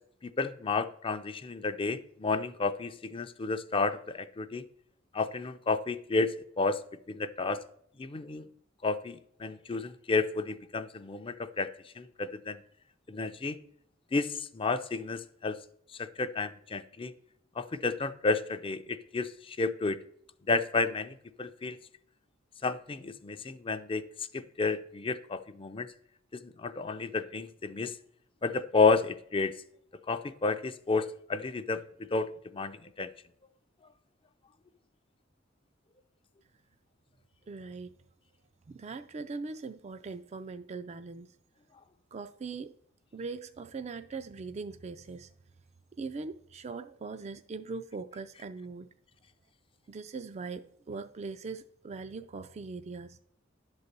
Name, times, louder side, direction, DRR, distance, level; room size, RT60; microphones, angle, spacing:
voice 1, 0.2-4.6 5.1-6.8 7.1-7.6 8.0-8.5 8.8-11.7 12.0-12.6 13.1-13.6 14.1-15.6 16.0-17.1 17.6-20.0 20.5-21.8 22.6-24.0 24.3-25.9 26.3-27.9 28.4-29.5 30.1-31.8 32.1-33.1, left 4 dB, 25° left, 0.5 m, -31 dB
voice 2, 37.5-37.9 38.7-41.3 42.1-42.7 43.1-45.3 46.0-48.9 49.9-53.2, right 4 dB, 35° right, 0.4 m, -40 dB
11.0 x 4.1 x 6.7 m
head